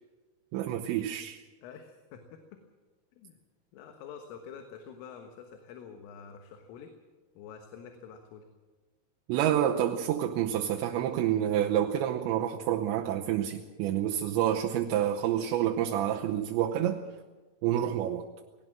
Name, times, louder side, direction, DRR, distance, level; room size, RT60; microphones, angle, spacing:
voice 1, 0.5-1.4 9.3-17.0 17.6-18.3, right 11 dB, 75° right, 1 dB, 2.9 m, -28 dB
voice 2, 1.6-2.6 3.2-3.4 3.7-6.9 7.4-8.5, left 7 dB, 90° left, 5 dB, 4.0 m, -47 dB
19.5 x 18.0 x 7.5 m, 1.3 s
omnidirectional pair, 5.7 m